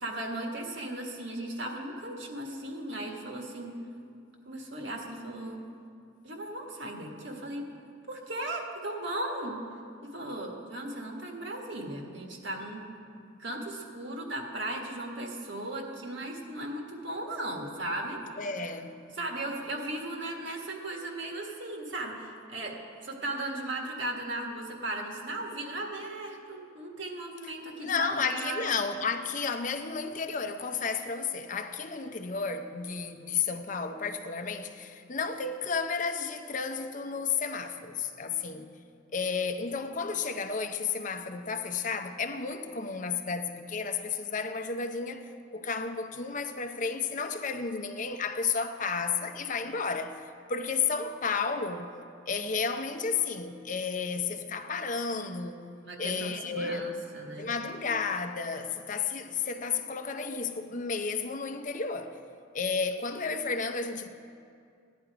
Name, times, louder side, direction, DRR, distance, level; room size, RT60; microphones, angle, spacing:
voice 1, 0.0-3.8 4.5-5.6 6.2-7.6 8.1-9.6 10.0-12.8 13.1-18.2 19.1-22.8 23.0-28.7 55.8-57.5, right 1 dB, 60° right, 1.7 m, -37 dB
voice 2, 18.4-19.0 27.8-38.7 39.1-50.1 50.5-51.9 52.3-55.7 56.0-57.0 57.4-62.1 62.5-64.1, left 5 dB, 40° left, 0.7 m, -32 dB
16.0 x 10.5 x 4.9 m
head